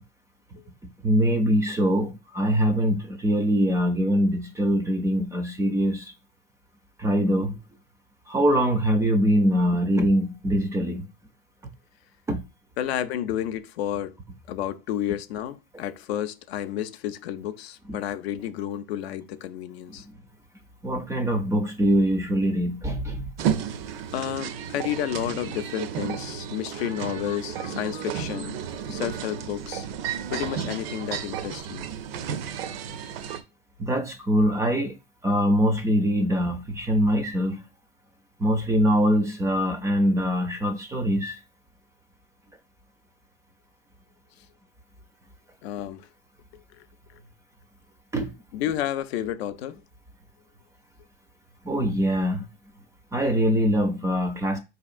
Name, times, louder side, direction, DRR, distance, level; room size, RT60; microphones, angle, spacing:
voice 1, 1.0-6.1 7.0-7.6 8.3-11.1 12.3-12.4 20.8-23.3 33.8-35.0 35.2-37.6 38.4-41.4 48.1-48.3 51.6-52.5 53.1-54.6, equal, 10° right, 0.3 m, -23 dB
voice 2, 12.8-14.1 14.5-20.0 24.1-28.6 28.9-29.9 30.3-31.9 45.6-46.1 48.5-49.8, left 11 dB, 80° left, 0.5 m, -31 dB
sound 1, 23.4-33.4, right 8 dB, 70° right, 0.5 m, -32 dB
4.3 x 2.8 x 2.4 m
supercardioid pair, 130°, 31 cm